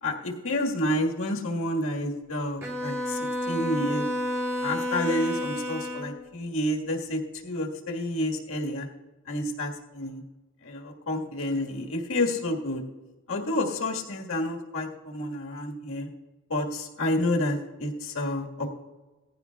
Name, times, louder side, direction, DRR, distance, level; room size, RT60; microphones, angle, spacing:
voice 1, 0.0-4.1 4.6-8.9 9.3-10.2 10.6-12.8 13.3-16.1 16.5-18.8, left 1 dB, 65° left, 0 dB, 1.7 m, -29 dB
Bowed string instrument, 2.6-6.2, left 1 dB, 10° right, 1.5 m, -30 dB
18.5 x 15.0 x 2.4 m, 1.2 s
head